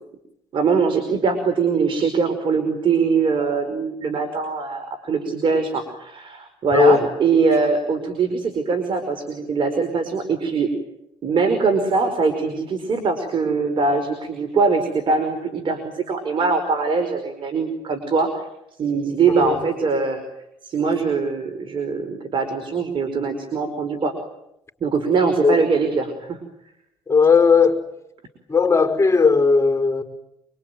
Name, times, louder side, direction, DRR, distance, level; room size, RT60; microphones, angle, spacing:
voice 1, 0.5-10.7 11.2-18.5 18.8-20.2 20.6-24.1 24.8-26.4, right 4 dB, 55° right, 8 dB, 4.9 m, -22 dB
voice 2, 6.7-7.1 19.4-19.6 25.4-25.6 27.1-27.8 28.5-30.0, left 5 dB, 25° left, 6 dB, 5.3 m, -16 dB
26.5 x 24.0 x 9.4 m, 0.83 s
supercardioid pair, 75°, 10 cm